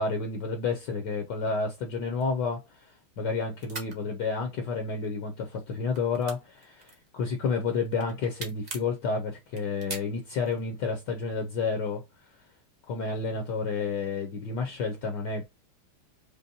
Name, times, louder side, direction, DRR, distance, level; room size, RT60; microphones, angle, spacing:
voice 1, 0.0-2.6 3.2-12.0 12.9-15.4, left 4 dB, 65° left, 1.2 m, -30 dB
sound 1, 2.2-3.3 3.6-3.9 4.7-5.2 5.5-7.4 7.8-8.9 9.5-10.6, right 3 dB, 35° right, 0.6 m, -41 dB
5.3 x 2.2 x 2.6 m
omnidirectional pair, 2.3 m